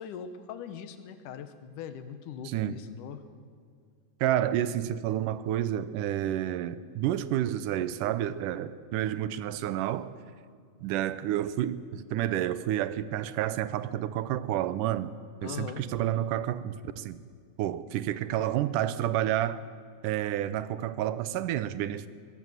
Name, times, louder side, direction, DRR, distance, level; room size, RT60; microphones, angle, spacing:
voice 1, 0.0-3.2 15.4-15.8, left 8 dB, 80° left, 2.7 m, -40 dB
voice 2, 2.5-2.8 4.2-10.1 10.8-15.2 15.4-17.2 17.6-19.6 20.0-22.1, right 12 dB, 90° right, 2.4 m, -30 dB
23.0 x 17.0 x 8.1 m
omnidirectional pair, 3.7 m